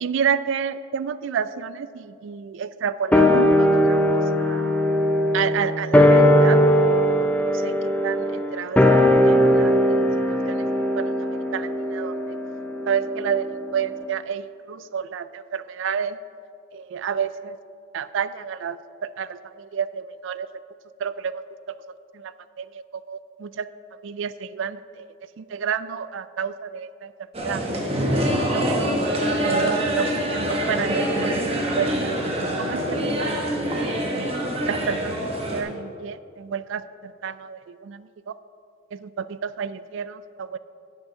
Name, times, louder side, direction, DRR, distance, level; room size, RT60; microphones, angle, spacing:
voice 1, 0.0-4.7 5.3-6.6 7.5-8.8 9.1-9.7 10.3-10.6 11.0-11.1 11.5-12.4 12.9-16.2 16.7-17.6 17.9-20.5 21.0-21.4 22.1-22.3 22.6-23.7 24.0-25.0 25.4-27.1 27.4-27.6 28.4-29.0 29.4-32.1 32.6-34.3 34.7-35.2 35.5-38.3 38.9-40.6, right 7 dB, 65° right, 14 dB, 0.3 m, -30 dB
sound 1, 3.1-13.7 14.0-14.1, equal, 5° left, 0.4 m, -19 dB
sound 2, 27.3-35.6, equal, 30° right, 1.0 m, -25 dB
8.1 x 6.7 x 5.6 m, 2.5 s
head